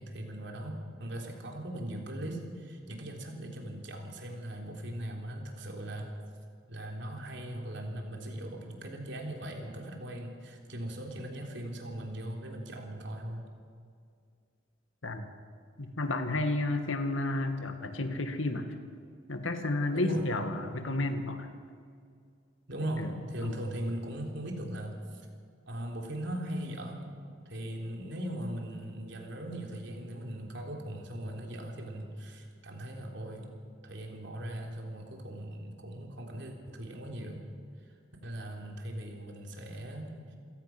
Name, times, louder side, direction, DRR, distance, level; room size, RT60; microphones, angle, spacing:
voice 1, 0.0-6.1 6.7-13.5 19.9-20.3 22.7-25.3 25.7-27.2 27.5-37.4 38.2-40.1, right 1 dB, 65° right, 1 dB, 3.6 m, -39 dB
voice 2, 15.8-18.7 19.3-21.5 23.0-23.1 23.4-23.6, left 2 dB, 85° left, 7 dB, 2.0 m, -31 dB
28.0 x 17.0 x 6.1 m, 2.2 s
head